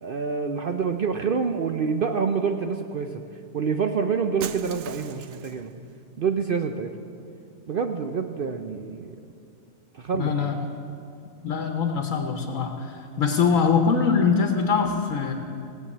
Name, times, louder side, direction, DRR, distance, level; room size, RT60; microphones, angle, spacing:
voice 1, 0.0-3.2 3.5-5.7 6.2-7.0 7.7-9.2 9.9-10.6, right 5 dB, 55° right, 5 dB, 0.6 m, -27 dB
Shatter, 4.4-5.7, right 10 dB, 75° right, 1.0 m, -38 dB
voice 2, 10.1-10.6 11.4-15.3, left 5 dB, 70° left, 4 dB, 1.3 m, -23 dB
17.0 x 7.5 x 8.5 m, 2.5 s
omnidirectional pair, 1.5 m